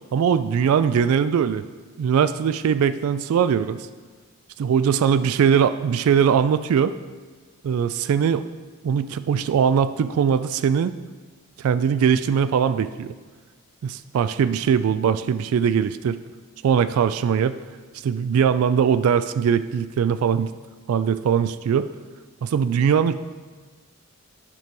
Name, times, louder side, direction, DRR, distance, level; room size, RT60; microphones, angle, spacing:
voice 1, 0.1-1.6 2.0-3.9 4.6-6.9 7.6-8.4 8.8-10.9 11.6-13.1 13.8-16.2 16.6-17.5 18.0-20.5 20.9-21.9 22.4-23.1, right 7 dB, 80° right, 14 dB, 0.3 m, -21 dB
9.0 x 5.2 x 4.6 m, 1.4 s
head